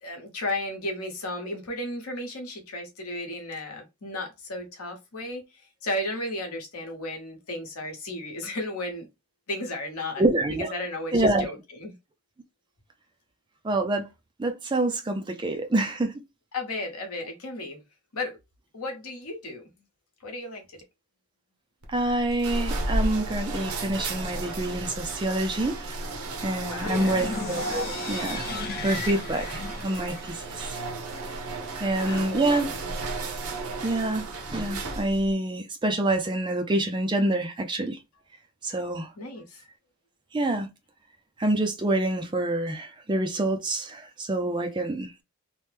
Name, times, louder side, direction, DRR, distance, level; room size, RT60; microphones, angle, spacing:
voice 1, 0.0-9.1 9.5-10.2 10.7-11.9 16.5-17.8 18.1-18.4 18.7-19.6 20.2-20.8 26.6-27.4 31.7-32.9 39.2-39.6, left 1 dB, 80° left, 1.0 m, -34 dB
voice 2, 10.2-10.7 11.1-11.5 13.6-14.1 14.4-16.1 21.9-26.0 26.4-28.5 28.8-30.8 31.8-32.7 33.8-38.0 38.6-39.1 40.3-40.7 41.4-45.1, right 1 dB, 20° right, 0.4 m, -27 dB
sound 1, 21.8-35.3, right 2 dB, 75° right, 0.7 m, -33 dB
sound 2, 26.8-30.8, left 4 dB, 45° left, 0.6 m, -35 dB
3.0 x 2.1 x 3.3 m
head